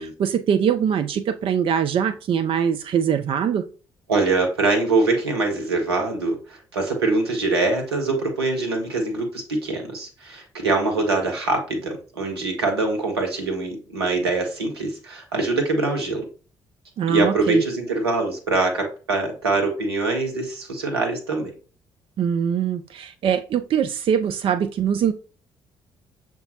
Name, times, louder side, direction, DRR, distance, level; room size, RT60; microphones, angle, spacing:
voice 1, 0.0-3.6 17.0-17.6 22.2-25.1, right 8 dB, 45° right, 10 dB, 0.4 m, -22 dB
voice 2, 4.1-16.2 17.1-21.5, right 3 dB, 85° right, 2 dB, 0.9 m, -23 dB
6.8 x 2.3 x 2.9 m, 0.36 s
figure-of-eight pair, 45°, 13 cm